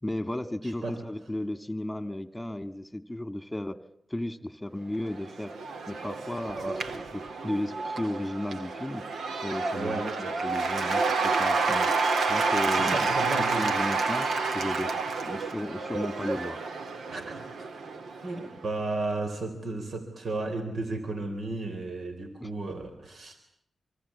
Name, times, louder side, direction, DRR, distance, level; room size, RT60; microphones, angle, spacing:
voice 1, 0.0-3.8 4.1-5.5 5.9-7.0 7.4-9.0 9.4-11.9 12.3-13.1 13.4-14.3 14.5-14.9 15.3-16.6 22.4-22.5, left 1 dB, 10° left, 12 dB, 1.9 m, -34 dB
voice 2, 0.6-1.1 6.5-6.9 9.7-10.2 12.7-13.7 17.1-17.7 18.2-23.4, right 2 dB, 70° right, 6 dB, 3.8 m, -34 dB
Cheering / Applause / Crowd, 5.1-18.5, right 4 dB, 85° right, 1.7 m, -29 dB
26.5 x 24.5 x 8.5 m, 0.69 s
cardioid pair, 65°, 0 cm